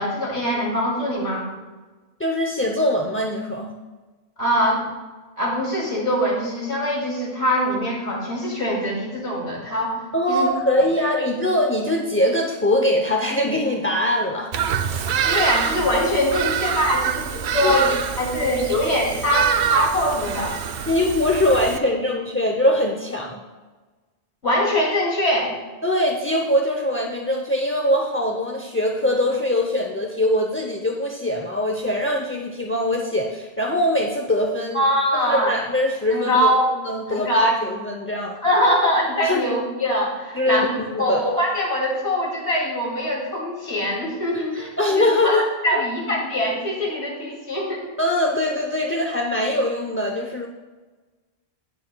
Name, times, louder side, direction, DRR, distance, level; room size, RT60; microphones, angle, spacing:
voice 1, 0.0-1.5 4.4-4.8 5.4-10.0 10.3-10.5 11.2-11.3 15.2-20.5 24.4-25.5 34.7-35.5 36.1-36.7 37.1-37.6 38.4-47.9, equal, 85° left, -3 dB, 2.7 m, -23 dB
voice 2, 2.2-3.7 10.1-14.5 17.6-17.8 20.9-23.4 25.8-34.8 35.1-36.5 36.8-38.4 39.2-39.4 40.3-41.3 44.8-45.4 45.7-45.8 48.0-50.5, left 1 dB, 15° left, 0 dB, 0.4 m, -22 dB
Bird vocalization bird call bird song, 14.5-21.8, right 8 dB, 85° right, 0.9 m, -25 dB
19.0 x 6.6 x 2.2 m, 1.3 s
omnidirectional pair, 1.1 m